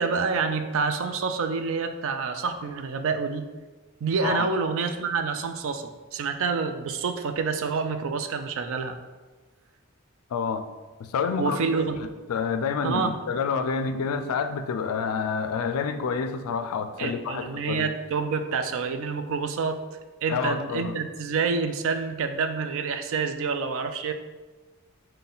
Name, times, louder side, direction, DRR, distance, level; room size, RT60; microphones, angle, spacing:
voice 1, 0.0-3.5 4.0-9.0 11.4-12.0 12.8-13.1 17.0-19.8 20.2-24.1, right 5 dB, 60° right, 7 dB, 0.4 m, -27 dB
voice 2, 10.3-10.6 11.0-11.6 12.0-17.9 20.3-21.0, left 5 dB, 75° left, 9 dB, 0.3 m, -28 dB
5.6 x 2.2 x 3.9 m, 1.2 s
head